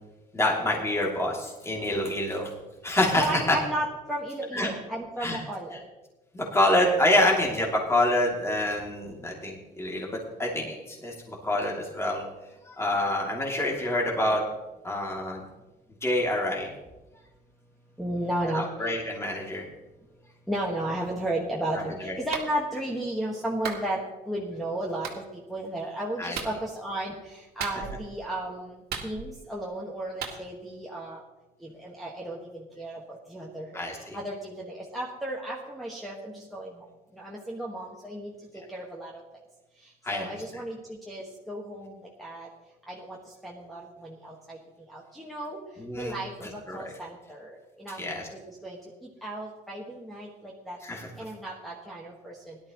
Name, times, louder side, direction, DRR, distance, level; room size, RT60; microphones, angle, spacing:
voice 1, 0.3-2.5 2.8-3.6 4.5-4.7 5.2-5.4 6.3-12.2 12.6-14.4 14.8-15.4 16.0-16.7 18.4-19.6 22.0-22.1 26.2-26.4 33.7-34.2 40.0-40.4 45.8-46.9 48.0-48.3 50.8-51.1, left 1 dB, 15° left, -2 dB, 2.7 m, -27 dB
voice 2, 3.2-5.8 18.0-18.9 20.5-25.2 25.5-31.2 31.6-36.7 37.1-39.2 40.1-42.5 42.9-44.6 44.9-45.6 46.0-48.0 48.5-50.8 51.2-52.6, right 1 dB, ahead, -5 dB, 1.6 m, -34 dB
Clapping, 22.3-22.5 23.6-23.9 25.0-25.2 26.3-26.6 27.6-28.1 28.9-29.5 30.2-30.4, right 7 dB, 70° right, 1.8 m, -35 dB
17.5 x 12.0 x 3.1 m, 1.1 s
cardioid pair, 110°, 17 cm